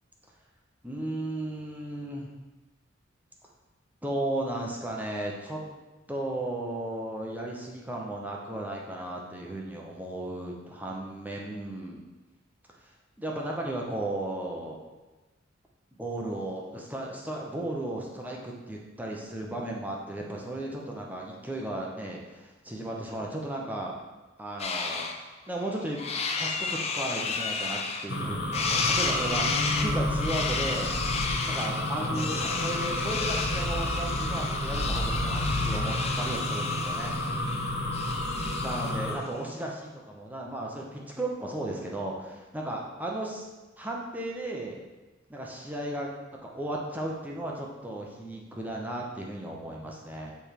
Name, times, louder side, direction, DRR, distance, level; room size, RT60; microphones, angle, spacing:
voice 1, 0.8-2.3 4.0-5.6 6.1-12.0 13.2-14.8 15.9-24.0 24.4-25.1 25.5-26.0 26.4-30.9 31.4-37.2 38.5-43.5 43.8-44.8 45.3-46.1 46.4-50.4, right 1 dB, 10° right, -2 dB, 0.8 m, -35 dB
sound 1, 24.6-25.2 25.6-28.2 28.5-39.0, left 4 dB, 30° left, 0.5 m, -32 dB
sound 2, 28.1-39.1, left 1 dB, 60° left, 0.9 m, -30 dB
7.0 x 3.4 x 4.5 m, 1.2 s
head